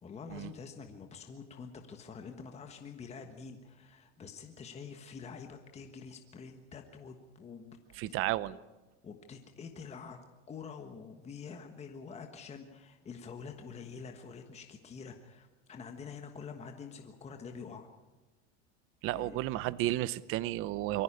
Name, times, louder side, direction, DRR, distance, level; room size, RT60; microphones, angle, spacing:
voice 1, 0.0-7.8 8.0-8.1 9.0-10.2 10.5-17.9 19.1-19.4, left 5 dB, 20° left, 5 dB, 1.4 m, -47 dB
voice 2, 7.9-8.6 19.0-21.0, right 15 dB, 35° right, 17 dB, 0.7 m, -32 dB
23.5 x 15.0 x 8.7 m, 1.2 s
supercardioid pair, 140°, 35 cm